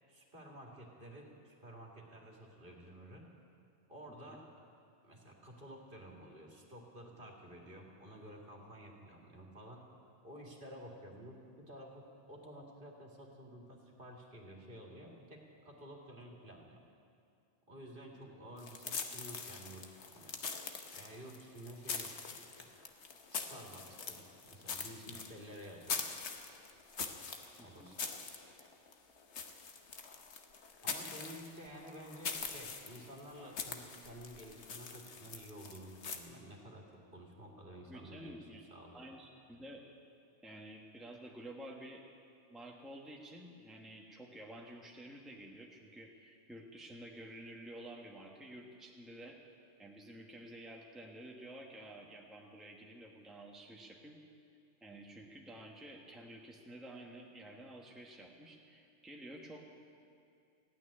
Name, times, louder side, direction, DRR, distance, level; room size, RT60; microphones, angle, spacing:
voice 1, 0.1-3.3 3.9-4.5 5.0-9.8 10.2-16.8 17.7-19.9 20.1-20.4 20.9-22.7 23.3-26.0 27.6-28.1 30.8-39.1, equal, 50° right, -1 dB, 2.2 m, -52 dB
sound 1, 18.6-36.2, left 5 dB, 75° left, 1.4 m, -43 dB
voice 2, 27.6-28.0 31.0-31.2 37.9-38.7 38.9-39.8 40.4-42.0 42.5-49.4 49.8-54.2 54.8-59.6, right 1 dB, ahead, -1 dB, 1.2 m, -51 dB
15.5 x 9.2 x 10.0 m, 2.5 s
omnidirectional pair, 1.2 m